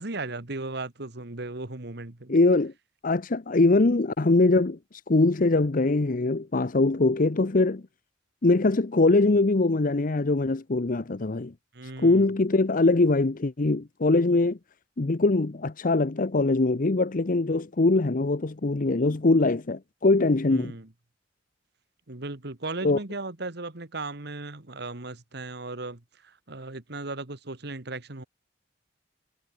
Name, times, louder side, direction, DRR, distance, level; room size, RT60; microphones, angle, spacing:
voice 1, 0.0-2.4 11.7-12.3 20.5-20.9 22.1-28.2, right 2 dB, 60° right, 1.8 m, -36 dB
voice 2, 2.3-2.7 3.0-7.8 8.4-11.5 12.0-14.6 15.0-20.7 22.8-23.0, left 2 dB, 45° left, 0.8 m, -22 dB
head